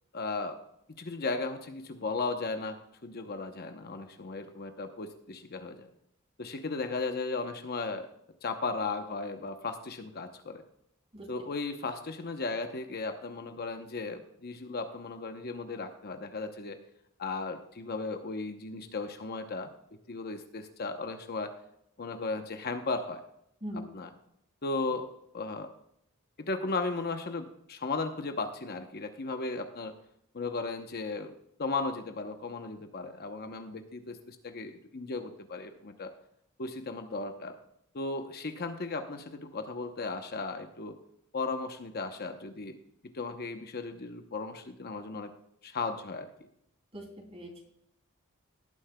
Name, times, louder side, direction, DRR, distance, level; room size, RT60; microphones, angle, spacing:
voice 1, 0.1-0.6 1.0-2.8 3.0-5.9 6.4-8.1 8.4-10.6 11.3-16.8 17.2-19.7 20.1-21.5 22.0-23.2 23.9-24.1 24.6-25.1 25.3-25.7 26.4-29.9 30.3-31.3 31.6-36.1 36.6-37.6 37.9-41.0 41.3-42.8 43.1-45.3 45.6-46.3, left 3 dB, 45° left, 6 dB, 0.8 m, -36 dB
voice 2, 46.9-47.6, equal, 30° right, 1 dB, 2.8 m, -41 dB
18.0 x 9.6 x 2.2 m, 0.75 s
head